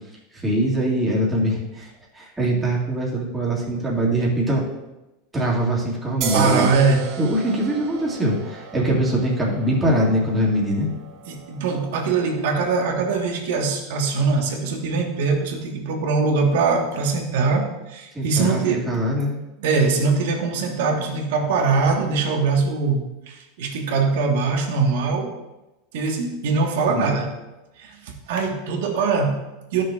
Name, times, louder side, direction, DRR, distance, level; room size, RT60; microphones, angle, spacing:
voice 1, 0.3-1.9 2.1-4.6 5.3-6.7 7.2-10.9 18.1-19.3 26.9-27.2, right 1 dB, 10° right, -5 dB, 2.0 m, -22 dB
sound 1, 6.2-13.5, right 4 dB, 45° right, 1.2 m, -35 dB
voice 2, 6.3-7.1 11.3-18.9 19.6-25.4 25.9-27.4 27.8-29.8, right 4 dB, 75° right, 2 dB, 1.4 m, -22 dB
13.0 x 6.3 x 2.4 m, 1.0 s
supercardioid pair, 150°, 0 cm